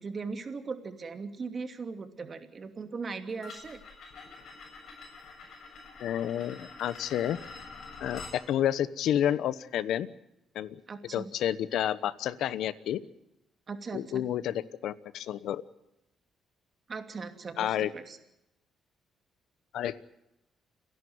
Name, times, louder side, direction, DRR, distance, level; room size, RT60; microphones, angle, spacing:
voice 1, 0.0-3.8 10.9-11.3 13.7-14.2 16.9-18.2, right 4 dB, 40° right, 7 dB, 2.7 m, -39 dB
sound 1, 3.4-8.4, left 4 dB, 65° left, 7.2 m, -46 dB
voice 2, 6.0-7.4 8.0-10.1 10.5-10.8 11.1-13.0 13.9-15.6 17.6-17.9 19.7-20.1, left 11 dB, 80° left, 16 dB, 1.0 m, -30 dB
29.5 x 11.5 x 9.5 m, 0.90 s
cardioid pair, 90°, 0 cm